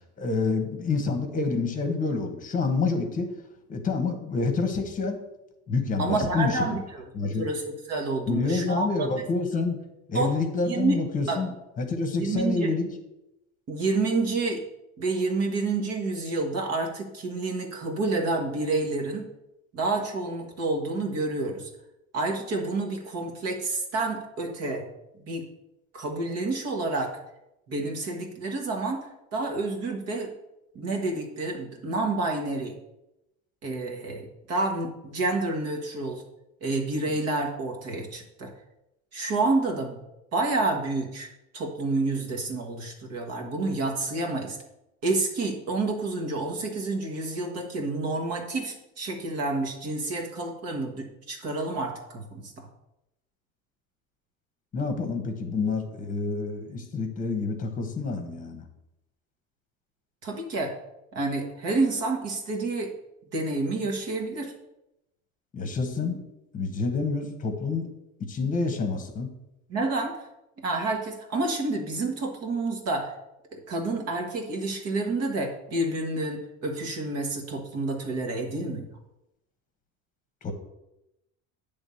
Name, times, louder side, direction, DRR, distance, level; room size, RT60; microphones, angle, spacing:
voice 1, 0.2-3.3 3.7-5.2 5.7-6.7 7.1-7.4 8.3-9.8 10.1-11.5 11.8-12.9 54.7-58.6 65.5-66.2 66.5-67.9 68.2-69.3 80.4-80.5, left 4 dB, 20° left, 6 dB, 1.2 m, -28 dB
voice 2, 6.0-9.1 10.1-10.3 10.6-11.0 11.3-11.4 12.2-12.7 13.7-14.6 15.0-19.2 19.7-21.7 22.1-24.8 25.2-25.4 25.9-27.1 27.7-30.3 30.7-32.7 33.6-36.2 36.6-38.5 39.1-40.0 40.3-41.3 41.5-44.6 45.0-52.7 60.2-60.7 61.1-62.9 63.3-64.5 69.7-70.3 70.6-73.1 73.5-78.9, right 3 dB, 45° right, 2 dB, 1.5 m, -29 dB
10.0 x 3.6 x 7.0 m, 0.89 s
cardioid pair, 165°, 35 cm